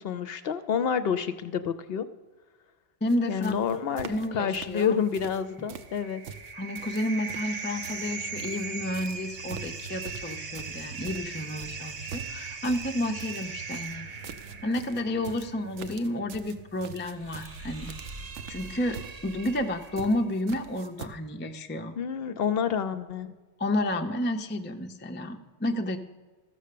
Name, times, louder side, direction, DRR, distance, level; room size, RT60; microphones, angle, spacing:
voice 1, 0.0-2.1 3.3-6.2 22.0-23.3, left 7 dB, 65° left, 11 dB, 0.7 m, -28 dB
voice 2, 3.0-3.5 4.1-5.0 6.5-14.1 14.6-18.0 18.5-21.9 23.6-26.0, left 1 dB, 20° left, 5 dB, 0.3 m, -31 dB
sound 1, 3.1-3.2 3.4-4.3 4.5-5.4 5.7-8.7 8.9-21.1, right 6 dB, 75° right, 1.0 m, -44 dB
sound 2, 5.6-20.2, right 4 dB, 55° right, 1.1 m, -40 dB
14.0 x 6.5 x 6.7 m, 1.3 s
omnidirectional pair, 1.2 m